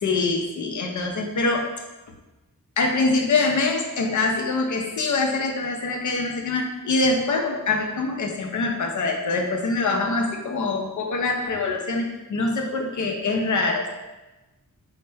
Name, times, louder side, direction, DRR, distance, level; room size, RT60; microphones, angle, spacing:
voice 1, 0.0-1.7 2.8-13.9, left 3 dB, 60° left, 3 dB, 0.6 m, -24 dB
4.2 x 2.1 x 3.3 m, 1.1 s
cardioid pair, 60°, 34 cm